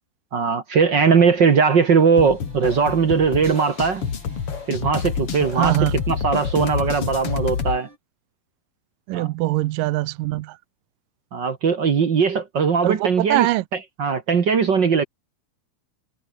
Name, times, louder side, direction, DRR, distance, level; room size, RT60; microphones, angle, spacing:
voice 1, 0.3-4.0 4.7-5.7 6.1-7.9 9.1-9.3 11.3-13.5 14.0-15.0, right 5 dB, 55° right, 1.2 m, -19 dB
sound 1, 1.3-8.0, right 2 dB, 30° right, 8.8 m, -49 dB
sound 2, 2.2-7.8, left 6 dB, 40° left, 2.9 m, -28 dB
voice 2, 5.5-5.9 9.1-10.6 12.8-13.6, right 18 dB, 80° right, 2.2 m, -22 dB
omnidirectional pair, 4.4 m